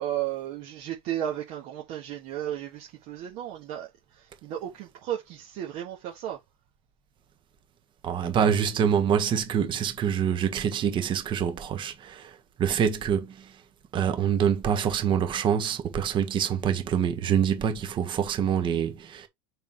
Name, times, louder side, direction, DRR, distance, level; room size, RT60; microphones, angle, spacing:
voice 1, 0.0-6.4, right 11 dB, 55° right, 1.7 m, -34 dB
voice 2, 8.0-13.5 13.9-19.3, right 8 dB, 30° right, 1.5 m, -26 dB
6.8 x 5.6 x 3.2 m
supercardioid pair, 145°, 16 cm